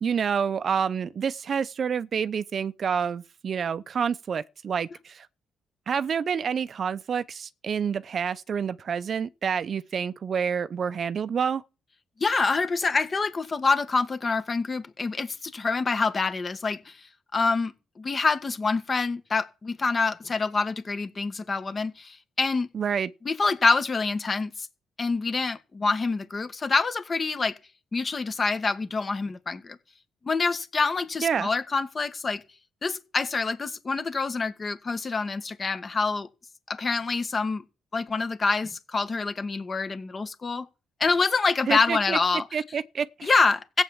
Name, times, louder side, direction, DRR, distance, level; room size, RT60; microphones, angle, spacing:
voice 1, 0.0-5.3 5.9-11.6 22.7-23.1 31.2-31.5 41.7-42.2 42.5-43.3, right 7 dB, 50° right, 0.6 m, -28 dB
voice 2, 12.2-17.0 17.3-22.7 23.3-24.7 25.0-27.5 27.9-29.8 30.2-32.4 32.8-36.3 36.7-37.6 37.9-40.7 41.0-42.5 43.2-43.8, left 4 dB, 35° left, 1.7 m, -26 dB
15.5 x 8.2 x 7.2 m
cardioid pair, 90°, 0 cm